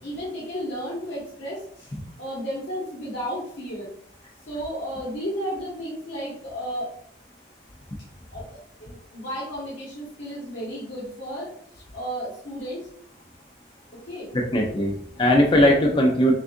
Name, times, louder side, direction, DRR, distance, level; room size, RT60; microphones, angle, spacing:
voice 1, 0.0-1.9 2.2-3.9 4.5-6.9 8.3-11.5 11.7-12.8 14.1-14.3, equal, 80° left, -7 dB, 1.4 m, -33 dB
voice 2, 14.3-16.3, equal, 25° left, 0 dB, 0.5 m, -19 dB
6.0 x 2.4 x 2.7 m, 0.63 s
head